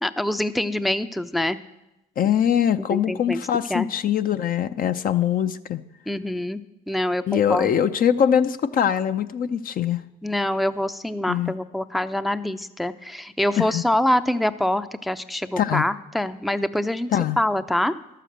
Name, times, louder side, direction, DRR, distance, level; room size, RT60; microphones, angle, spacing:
voice 1, 0.0-1.6 2.8-3.4 3.7-3.9 6.1-7.7 10.2-17.1 17.4-17.9, left 1 dB, ahead, 12 dB, 0.5 m, -25 dB
voice 2, 2.2-5.8 7.3-10.0 11.3-11.5 13.6-13.8 15.6-15.8 17.1-17.4, left 9 dB, 50° left, 10 dB, 0.6 m, -22 dB
12.0 x 6.7 x 7.8 m, 0.93 s
supercardioid pair, 70°, 18 cm